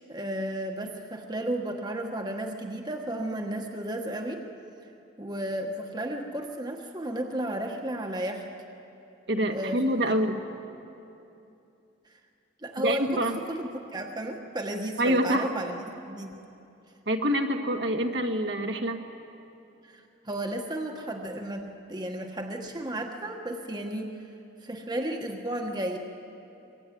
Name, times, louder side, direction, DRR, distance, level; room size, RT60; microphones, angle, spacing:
voice 1, 0.1-4.5 5.2-8.5 9.5-10.1 12.6-16.3 19.9-24.1 24.6-26.0, right 1 dB, 20° right, 3 dB, 1.4 m, -33 dB
voice 2, 9.3-10.4 12.8-13.4 15.0-15.5 17.1-19.0, equal, 65° right, 4 dB, 1.8 m, -26 dB
24.0 x 22.5 x 9.4 m, 2.8 s
head